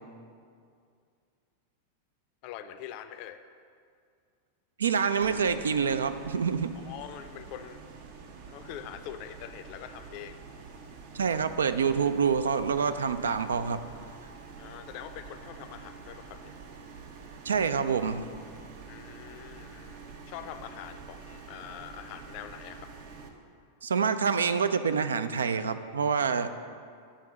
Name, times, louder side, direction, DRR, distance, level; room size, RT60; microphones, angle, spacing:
voice 1, 2.4-3.4 6.7-7.8 8.5-10.4 14.6-16.5 18.9-22.9, left 10 dB, 45° left, 9 dB, 0.4 m, -44 dB
voice 2, 4.8-6.7 11.1-13.8 17.4-18.2 23.8-26.5, right 6 dB, 70° right, 11 dB, 0.3 m, -27 dB
sound 1, 5.2-23.3, right 5 dB, 50° right, 0.7 m, -47 dB
8.2 x 3.7 x 6.2 m, 2.3 s
figure-of-eight pair, 90°, 0 cm